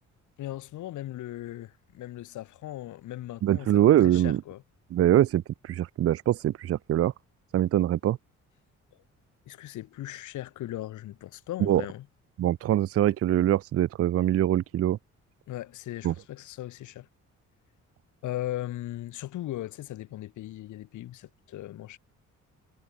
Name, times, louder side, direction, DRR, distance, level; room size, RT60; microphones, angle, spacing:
voice 1, 0.4-4.6 9.5-12.1 15.5-17.1 18.2-22.0, left 14 dB, 75° left, 1.2 m, -38 dB
voice 2, 3.4-4.4 4.9-7.1 7.5-8.2 11.6-11.8 12.4-15.0 16.0-16.1, right 12 dB, 50° right, 0.5 m, -23 dB
cardioid pair, 90°, 30 cm